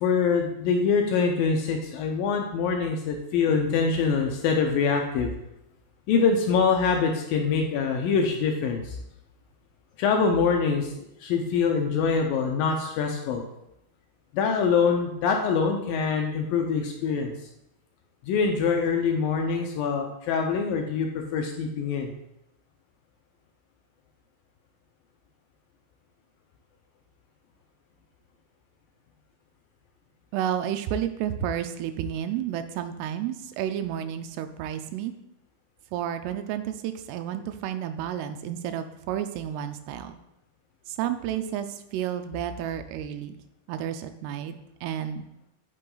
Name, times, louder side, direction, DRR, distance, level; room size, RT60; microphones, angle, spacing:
voice 1, 0.0-5.3 6.1-9.0 10.0-13.4 14.3-17.3 18.2-22.2, left 5 dB, 75° left, 3 dB, 2.2 m, -24 dB
voice 2, 30.3-35.1 35.9-40.2 40.9-43.4 43.7-44.5 44.8-45.3, right 10 dB, 90° right, 8 dB, 2.7 m, -31 dB
9.6 x 5.4 x 3.8 m, 0.85 s
omnidirectional pair, 4.6 m